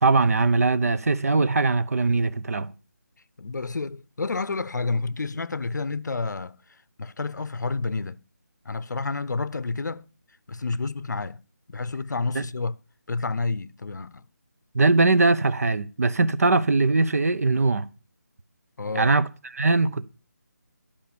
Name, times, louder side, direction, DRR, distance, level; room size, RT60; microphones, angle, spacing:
voice 1, 0.0-2.7 12.3-12.4 14.7-17.9 18.9-19.3 19.5-20.1, right 3 dB, 55° right, 0.7 m, -21 dB
voice 2, 3.4-6.5 7.0-8.2 8.7-10.1 10.5-11.4 11.7-12.8 13.1-14.2 18.8-19.1, left 3 dB, 75° left, 0.7 m, -29 dB
12.0 x 5.1 x 7.0 m
figure-of-eight pair, 175°, 10 cm